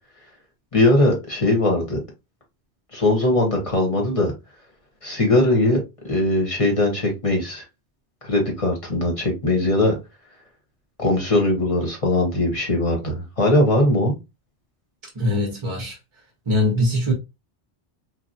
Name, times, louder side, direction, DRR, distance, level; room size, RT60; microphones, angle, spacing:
voice 1, 0.7-2.0 2.9-4.3 5.0-5.8 6.0-7.6 8.2-10.0 11.0-14.1, left 1 dB, 30° left, 0.9 m, -20 dB
voice 2, 15.2-16.0 16.5-17.1, left 1 dB, 30° right, 0.6 m, -21 dB
3.2 x 2.2 x 2.6 m
omnidirectional pair, 1.2 m